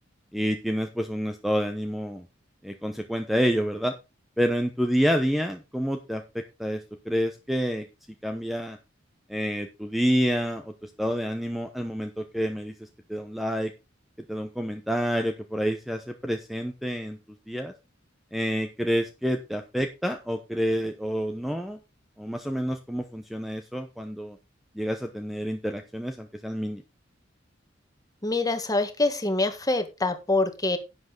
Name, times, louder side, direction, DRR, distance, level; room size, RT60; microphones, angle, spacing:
voice 1, 0.3-2.2 2.6-3.9 4.4-7.8 8.2-8.8 9.3-12.7 13.1-13.7 14.3-17.2 17.5-17.7 18.3-21.8 22.2-24.4 24.7-26.8, equal, ahead, 6 dB, 0.9 m, -28 dB
voice 2, 28.2-30.8, left 2 dB, 20° left, 8 dB, 1.7 m, -25 dB
11.0 x 8.0 x 3.9 m, 0.26 s
head